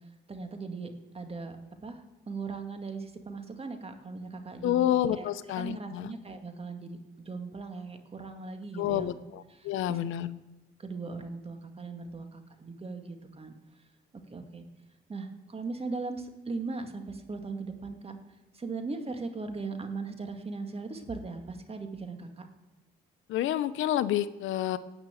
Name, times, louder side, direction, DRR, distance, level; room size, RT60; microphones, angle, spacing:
voice 1, 0.0-1.6 1.8-5.3 5.5-7.0 7.3-9.2 9.5-10.0 10.8-13.5 14.3-14.6 15.1-18.2 18.5-22.5, right 3 dB, 30° right, 6 dB, 2.0 m, -39 dB
voice 2, 4.6-6.1 8.7-10.3 23.3-24.8, left 12 dB, 85° left, 14 dB, 0.7 m, -29 dB
18.0 x 6.0 x 9.0 m, 1.0 s
cardioid pair, 90°, 20 cm